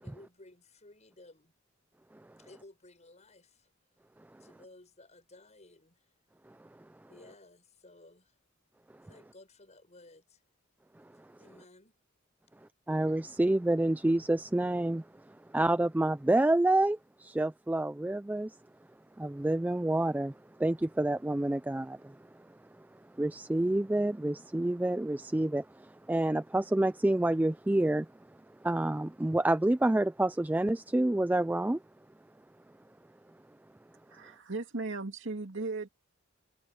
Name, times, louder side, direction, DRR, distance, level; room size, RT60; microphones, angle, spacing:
voice 1, 0.0-1.5 2.4-3.7 4.4-6.1 7.1-8.4 9.1-10.4 11.4-11.9, left 2 dB, 35° left, 7.0 m, -56 dB
voice 2, 12.9-18.5 19.2-20.3 20.6-22.2 23.2-28.1 28.6-31.8, right 1 dB, 10° right, 0.3 m, -28 dB
voice 3, 34.1-35.9, right 3 dB, 60° right, 2.5 m, -37 dB
head